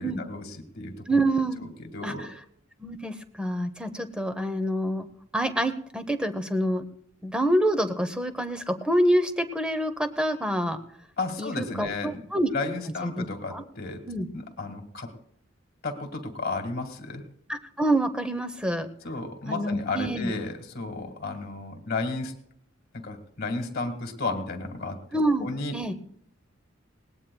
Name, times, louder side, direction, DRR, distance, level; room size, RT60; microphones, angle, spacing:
voice 1, 0.0-1.2 1.6-2.3 11.2-12.2 12.5-14.0 14.3-15.1 15.8-17.2 19.0-22.3 22.9-25.0 25.4-25.8, left 3 dB, 50° left, 5 dB, 1.8 m, -33 dB
voice 2, 1.1-1.6 2.0-2.3 2.8-5.1 5.3-6.8 7.2-10.8 11.4-12.5 13.0-13.2 13.5-13.6 14.1-14.3 17.5-18.9 19.5-20.3 25.1-25.9, right 1 dB, 5° right, 9 dB, 0.8 m, -27 dB
20.0 x 18.0 x 2.3 m, 0.67 s
head